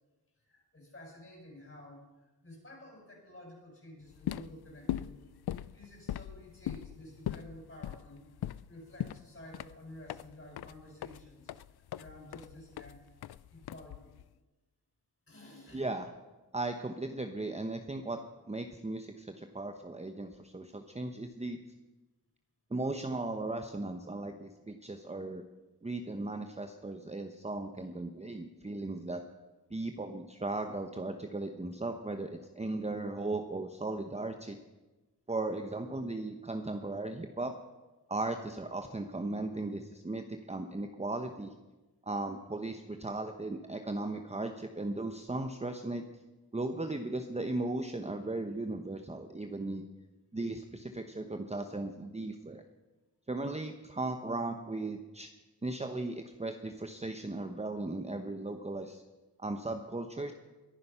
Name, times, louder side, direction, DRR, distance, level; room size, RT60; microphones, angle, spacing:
voice 1, 0.4-5.3 5.7-8.3 8.7-11.5 11.9-13.1 13.5-14.1 15.3-15.8, left 1 dB, 35° left, -1 dB, 6.6 m, -51 dB
sound 1, 4.1-14.3, left 11 dB, 80° left, 0.5 m, -40 dB
voice 2, 15.7-16.1 16.5-18.2 18.5-21.6 22.7-25.4 25.8-29.2 29.7-34.6 35.3-37.5 38.1-41.5 42.0-46.0 46.5-49.9 50.3-52.6 53.3-55.3 55.6-59.0 59.4-60.3, right 2 dB, 15° right, 6 dB, 0.9 m, -37 dB
22.0 x 10.5 x 5.6 m, 1.1 s
wide cardioid pair, 85°, 38 cm